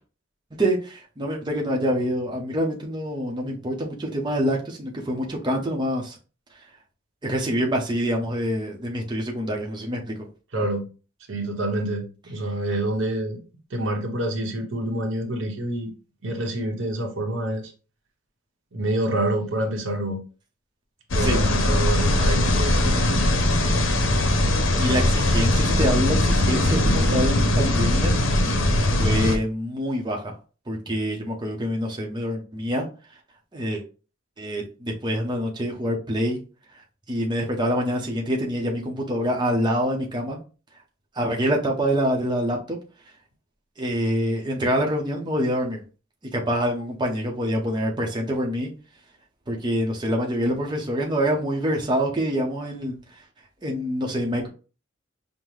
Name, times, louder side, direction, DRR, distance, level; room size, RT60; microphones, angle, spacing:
voice 1, 0.6-6.2 7.2-10.1 21.2-21.4 24.8-28.1 28.4-28.6 29.0-30.3 30.7-32.9 33.5-33.8 34.4-36.4 37.1-40.4 41.1-42.8 43.8-45.8 46.3-48.7 49.5-53.0 53.6-54.5, equal, 25° right, -1 dB, 0.7 m, -26 dB
voice 2, 10.5-10.9 11.3-13.4 13.7-15.9 16.2-17.7 18.7-20.2 21.1-23.1, right 1 dB, 85° right, 1 dB, 1.0 m, -27 dB
sound 1, 21.1-29.4, left 1 dB, 85° left, 0.7 m, -20 dB
5.4 x 2.1 x 3.1 m, 0.35 s
head